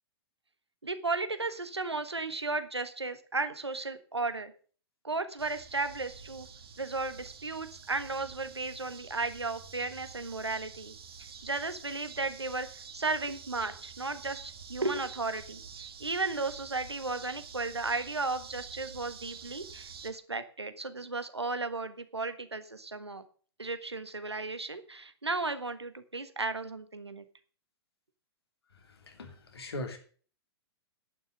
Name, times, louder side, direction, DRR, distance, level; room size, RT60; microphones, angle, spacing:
voice 1, 0.8-4.5 5.0-6.5 6.8-10.9 11.4-12.7 12.9-15.6 16.0-23.2 23.6-27.2, right 3 dB, 85° right, 10 dB, 1.4 m, -34 dB
sound 1, 5.4-20.1, right 6 dB, 65° right, 1.9 m, -48 dB
voice 2, 28.8-30.0, left 2 dB, 70° left, 4 dB, 3.2 m, -40 dB
11.0 x 6.5 x 8.0 m, 0.43 s
figure-of-eight pair, 110°, 14 cm